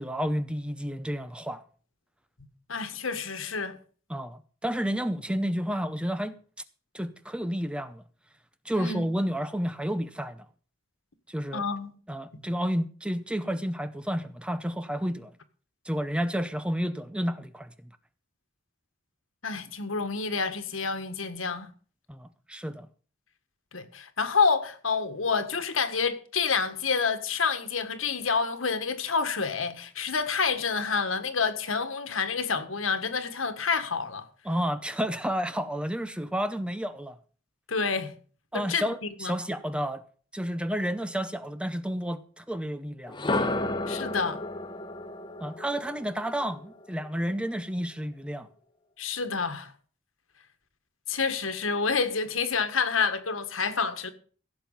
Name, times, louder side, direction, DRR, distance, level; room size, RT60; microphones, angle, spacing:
voice 1, 0.0-1.6 4.1-6.4 6.9-8.0 8.6-10.5 11.3-11.6 12.1-15.3 15.9-17.9 22.1-22.9 34.4-37.2 38.5-40.0 40.3-43.2 45.4-48.5, equal, 5° right, 0.7 m, -31 dB
voice 2, 2.7-3.8 8.7-9.0 11.5-11.9 12.3-12.4 19.4-21.7 23.7-34.2 37.7-38.1 38.5-39.3 43.9-44.4 49.0-49.7 51.1-54.1, left 5 dB, 85° left, 1.7 m, -28 dB
sound 1, 43.1-47.0, left 2 dB, 25° left, 1.1 m, -32 dB
16.0 x 7.6 x 5.6 m
head